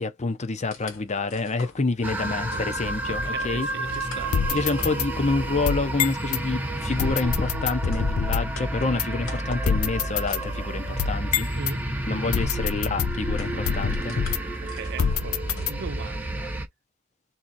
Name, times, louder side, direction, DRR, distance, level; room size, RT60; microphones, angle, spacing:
voice 1, 0.0-3.7 4.5-11.5 12.1-14.2, left 3 dB, 30° left, 0.7 m, -28 dB
sound 1, 0.6-16.3, left 3 dB, 60° left, 1.4 m, -46 dB
sound 2, 2.0-16.7, right 1 dB, 10° right, 0.7 m, -30 dB
voice 2, 3.1-4.4 11.5-11.9 12.6-12.7 14.6-15.4 15.7-16.5, right 6 dB, 50° right, 0.4 m, -39 dB
sound 3, 4.3-6.4 7.0-8.6 9.0-9.1 9.6-11.8 12.3-14.6 15.0-16.1, left 7 dB, 80° left, 0.5 m, -27 dB
3.6 x 2.8 x 4.1 m
head